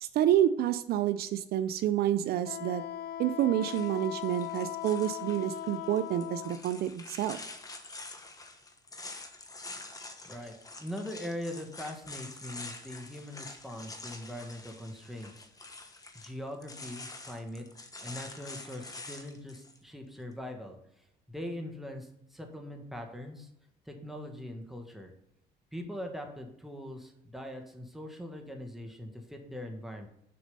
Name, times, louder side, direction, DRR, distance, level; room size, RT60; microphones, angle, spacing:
voice 1, 0.0-2.8 3.2-7.4, right 11 dB, 65° right, 12 dB, 0.5 m, -28 dB
Wind instrument woodwind instrument, 2.4-6.6, left 12 dB, 80° left, 0.6 m, -39 dB
sound 1, 3.6-19.8, left 3 dB, 20° left, 1.0 m, -46 dB
voice 2, 10.2-15.8 16.1-17.6 18.0-23.5 23.8-25.1 25.7-30.1, left 1 dB, ahead, 3 dB, 1.5 m, -42 dB
6.8 x 5.1 x 5.3 m, 0.77 s
cardioid pair, 110°, 17 cm